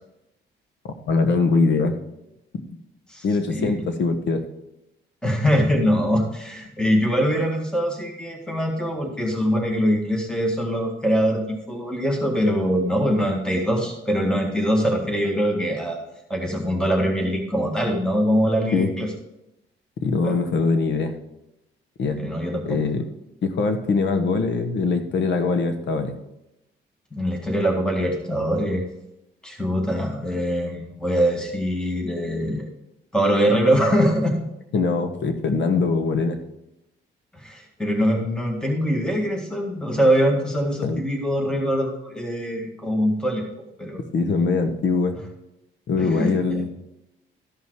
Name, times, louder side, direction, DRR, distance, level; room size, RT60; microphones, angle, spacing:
voice 1, 1.1-2.0 3.2-4.4 18.7-18.9 20.0-21.1 22.0-22.2 22.7-23.0 23.4-26.1 34.7-36.4 40.8-41.0 44.1-45.2 45.9-46.7, left 4 dB, 65° left, 8 dB, 1.3 m, -22 dB
voice 2, 3.1-3.8 5.2-16.0 16.3-19.1 20.2-20.4 22.2-22.8 27.1-28.8 29.4-32.7 33.1-34.4 37.3-43.4 43.8-44.0 46.0-46.6, equal, 5° left, 1 dB, 1.8 m, -23 dB
13.5 x 5.5 x 4.8 m, 0.87 s
cardioid pair, 90°, 20 cm